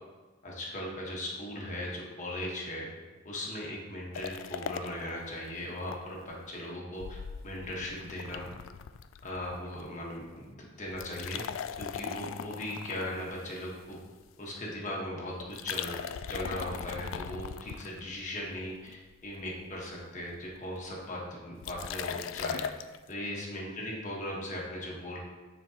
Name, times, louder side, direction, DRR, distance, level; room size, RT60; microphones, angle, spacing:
voice 1, 0.4-2.9 3.2-8.5 9.2-11.4 11.8-14.0 14.4-16.0 16.3-22.7 23.1-25.2, left 1 dB, 40° left, -3 dB, 1.3 m, -38 dB
sound 1, 4.1-6.0 6.3-6.4 7.0-9.9 10.1-10.4 10.9-14.2 15.4-18.4 18.9-19.4 19.7-19.8 20.0-20.5 21.6-23.0, left 7 dB, 75° left, 0.3 m, -39 dB
9.1 x 4.4 x 2.9 m, 1.3 s
head